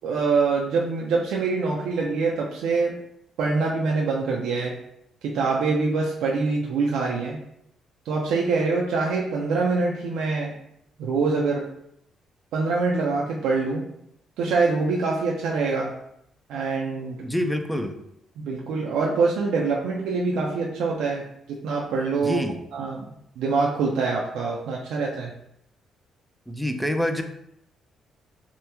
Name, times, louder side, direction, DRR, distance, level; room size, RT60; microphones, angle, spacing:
voice 1, 0.0-3.0 3.4-4.8 5.2-7.4 8.1-10.5 11.0-11.7 12.5-13.8 14.4-15.9 16.5-17.2 18.4-22.4 22.7-23.0 23.4-25.3, right 4 dB, 85° right, -3 dB, 0.4 m, -24 dB
voice 2, 17.2-18.0 22.2-22.6 26.5-27.2, equal, ahead, 6 dB, 0.4 m, -26 dB
3.4 x 2.1 x 2.9 m, 0.76 s
cardioid pair, 90°, 0 cm